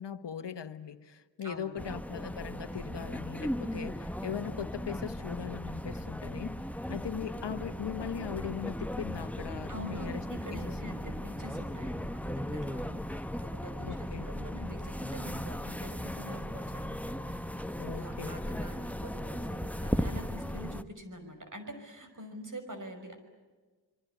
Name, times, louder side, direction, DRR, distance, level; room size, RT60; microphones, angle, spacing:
voice 1, 0.0-6.5 6.9-10.2 10.5-10.6 13.8-14.3 17.8-18.6, left 8 dB, 85° left, 8 dB, 1.2 m, -39 dB
voice 2, 1.4-2.0 9.7-17.7 18.0-23.2, equal, 45° right, 7 dB, 5.8 m, -46 dB
sound 1, 1.8-20.8, equal, 5° left, 1.0 m, -37 dB
27.0 x 23.5 x 8.2 m, 1.3 s
wide cardioid pair, 60°, 41 cm